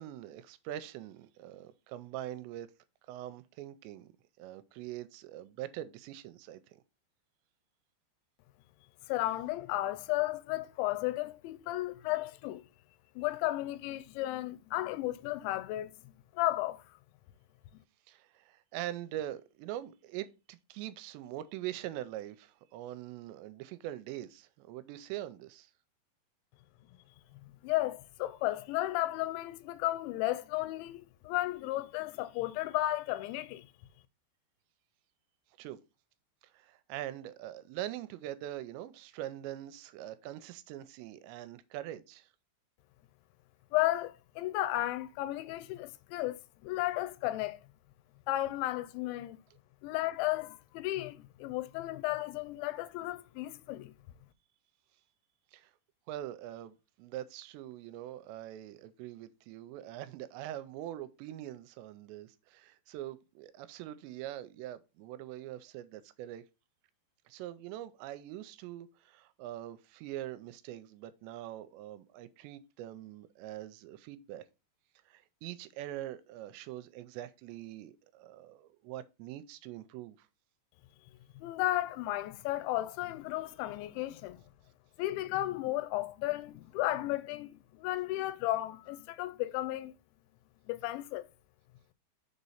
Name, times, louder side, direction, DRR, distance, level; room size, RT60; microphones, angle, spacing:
voice 1, 0.0-2.7 3.1-4.1 4.4-6.8 18.1-25.7 35.6-35.8 36.5-42.3 55.5-55.7 56.1-66.4 67.3-74.4 75.1-80.3, right 13 dB, 85° right, 2.7 m, -43 dB
voice 2, 9.1-12.6 13.2-16.8 27.6-33.7 43.7-47.6 48.3-49.4 49.8-53.9 81.4-84.4 85.0-89.9 90.7-91.3, left 16 dB, 85° left, 2.9 m, -34 dB
6.7 x 4.1 x 5.5 m
omnidirectional pair, 5.2 m